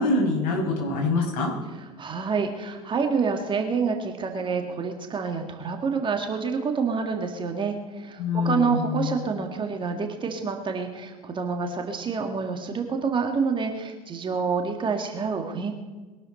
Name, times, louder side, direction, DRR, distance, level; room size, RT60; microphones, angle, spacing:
voice 1, 0.0-1.5 8.2-9.2, left 3 dB, 50° left, 0 dB, 6.2 m, -25 dB
voice 2, 2.0-15.8, right 5 dB, 25° right, 4 dB, 2.0 m, -27 dB
22.0 x 12.0 x 4.2 m, 1.3 s
figure-of-eight pair, 80°, 19 cm